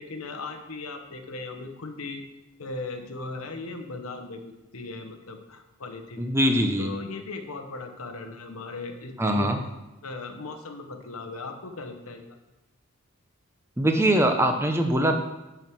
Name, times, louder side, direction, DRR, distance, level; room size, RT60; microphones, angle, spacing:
voice 1, 0.0-2.2 2.6-6.2 6.8-9.5 10.0-12.4, left 3 dB, 80° left, 5 dB, 1.0 m, -38 dB
voice 2, 6.2-6.9 9.2-9.6 13.8-15.2, right 1 dB, 10° right, 4 dB, 0.6 m, -22 dB
6.6 x 6.2 x 6.0 m, 1.0 s
head